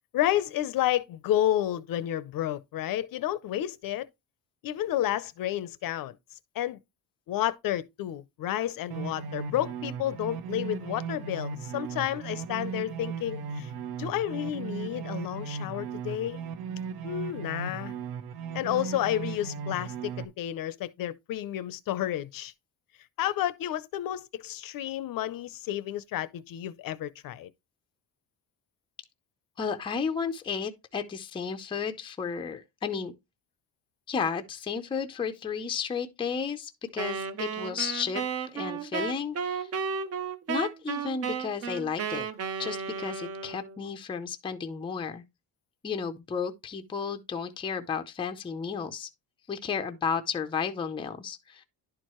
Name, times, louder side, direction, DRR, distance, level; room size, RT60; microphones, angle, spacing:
voice 1, 0.1-4.1 4.6-6.2 6.5-6.8 7.3-13.7 14.0-16.4 17.0-17.9 18.5-22.5 23.2-27.5, left 12 dB, 55° left, 0.6 m, -31 dB
sound 1, 8.9-20.2, right 6 dB, 65° right, 0.9 m, -37 dB
voice 2, 29.6-33.1 34.1-38.2 38.5-39.7 40.5-42.3 42.6-45.2 45.8-49.1 49.5-51.6, left 6 dB, 15° left, 0.5 m, -33 dB
Wind instrument woodwind instrument, 37.0-43.8, right 6 dB, 35° right, 0.6 m, -33 dB
11.0 x 4.6 x 3.0 m
cardioid pair, 175°, 41 cm